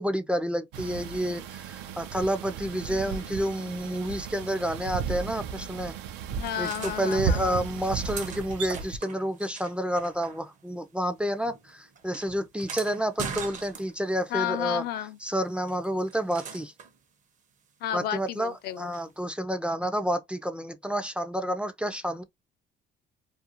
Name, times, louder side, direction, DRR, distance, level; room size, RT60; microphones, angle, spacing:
voice 1, 0.0-5.9 6.6-14.8 15.2-16.7 17.9-22.2, equal, 5° right, 0.3 m, -29 dB
sound 1, 0.7-9.0, right 6 dB, 85° right, 0.5 m, -35 dB
voice 2, 2.9-3.3 6.3-7.7 14.3-15.2 17.8-18.9, left 11 dB, 70° left, 0.4 m, -32 dB
sound 2, 6.4-7.2 7.8-10.8 11.0-14.2 15.7-17.0 18.9-19.0, right 6 dB, 50° right, 0.7 m, -41 dB
2.5 x 2.3 x 2.8 m
cardioid pair, 110°, 17 cm